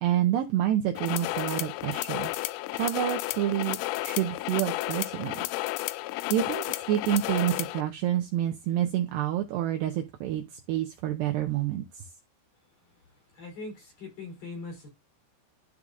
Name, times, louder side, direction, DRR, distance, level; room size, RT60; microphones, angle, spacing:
voice 1, 0.0-5.4 6.3-10.4 10.7-12.0, right 12 dB, 90° right, 2.4 m, -28 dB
sound 1, 1.0-7.8, left 18 dB, 85° left, 2.9 m, -32 dB
voice 2, 13.4-14.9, left 3 dB, 50° left, 4.8 m, -41 dB
12.5 x 4.8 x 2.5 m
omnidirectional pair, 5.8 m